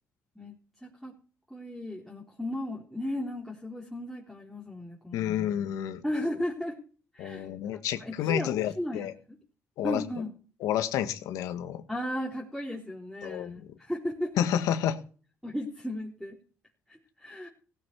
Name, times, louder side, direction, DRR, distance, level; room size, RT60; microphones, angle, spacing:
voice 1, 0.8-1.1 1.5-5.5 6.0-6.8 7.1-7.5 8.0-9.4 9.8-10.3 11.9-14.5 15.4-16.4 16.9-17.5, left 1 dB, ahead, -5 dB, 4.0 m, -35 dB
voice 2, 5.1-6.0 7.2-9.1 9.8-10.0 10.6-11.8 13.2-13.7 14.4-15.0, left 10 dB, 85° left, 9 dB, 1.6 m, -30 dB
17.0 x 8.4 x 4.7 m, 0.40 s
cardioid pair, 80°, 6 cm